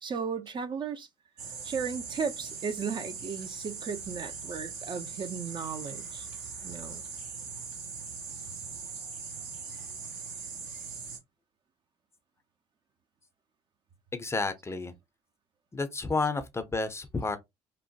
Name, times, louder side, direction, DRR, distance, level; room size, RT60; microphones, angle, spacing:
voice 1, 0.0-1.1 1.6-6.3 6.6-7.0, right 6 dB, 35° right, 0.5 m, -35 dB
sound 1, 1.4-11.2, right 5 dB, 70° right, 0.9 m, -40 dB
voice 2, 14.1-14.9 15.7-17.4, left 3 dB, 20° left, 0.5 m, -31 dB
2.9 x 2.1 x 2.7 m
hypercardioid pair, 55°, 14 cm